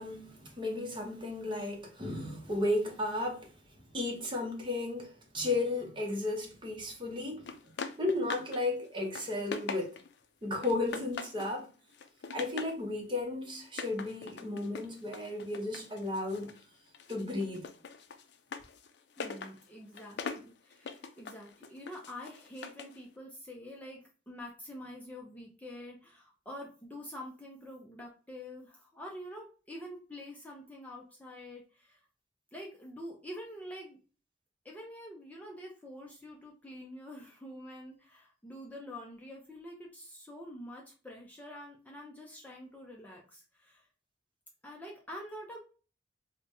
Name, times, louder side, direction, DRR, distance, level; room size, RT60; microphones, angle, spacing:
voice 1, 0.0-3.6 3.9-7.5 8.0-10.0 10.4-11.7 12.3-16.6 17.1-17.6, left 2 dB, 25° right, 0.8 m, -34 dB
sound 1, 7.5-8.6 8.9-10.2 10.6-11.6 11.9-12.8 13.6-16.6 16.9-23.0, left 5 dB, 65° left, 0.4 m, -43 dB
voice 2, 19.2-32.0 32.5-34.0 34.6-43.9 44.6-45.6, equal, 10° left, 0.5 m, -46 dB
5.0 x 2.2 x 2.6 m
head